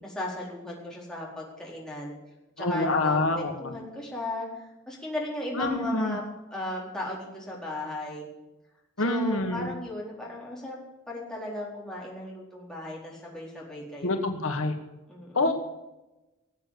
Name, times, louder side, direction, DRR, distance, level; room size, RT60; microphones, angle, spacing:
voice 1, 0.0-2.2 2.6-4.5 4.9-6.2 6.5-8.3 9.0-10.8 11.1-14.2 15.1-15.5, left 1 dB, 5° left, -4 dB, 4.4 m, -36 dB
voice 2, 2.6-3.8 5.5-6.2 9.0-9.7 14.0-14.7 15.3-15.5, left 2 dB, 75° left, 6 dB, 1.5 m, -26 dB
19.0 x 8.2 x 8.6 m, 1.0 s
head